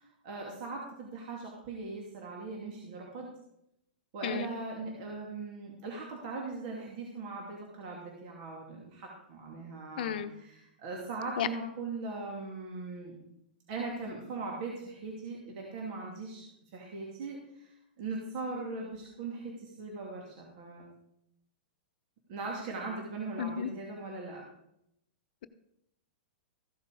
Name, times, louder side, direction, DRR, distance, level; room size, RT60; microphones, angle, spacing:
voice 1, 0.0-3.3 4.1-13.1 13.7-16.5 16.7-17.7 18.0-20.8 22.3-24.4, right 3 dB, 50° right, -1 dB, 2.7 m, -40 dB
voice 2, 10.0-10.3 11.4-11.5 23.4-23.7, left 9 dB, 65° left, 11 dB, 0.8 m, -32 dB
14.5 x 6.9 x 4.9 m, 0.79 s
hypercardioid pair, 140°, 5 cm